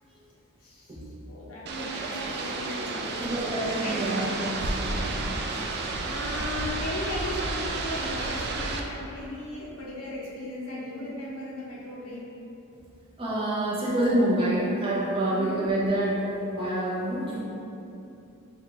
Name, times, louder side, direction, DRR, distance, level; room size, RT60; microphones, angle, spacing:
voice 1, 0.6-1.0 1.3-4.0 6.0-12.4 15.3-15.6, left 1 dB, 70° left, -5 dB, 0.7 m, -36 dB
sound 1, 1.7-8.8, right 3 dB, 45° right, 0.3 m, -31 dB
voice 2, 3.2-5.1 13.2-17.4, right 1 dB, 25° right, -8 dB, 0.7 m, -27 dB
5.4 x 2.3 x 3.0 m, 2.8 s
head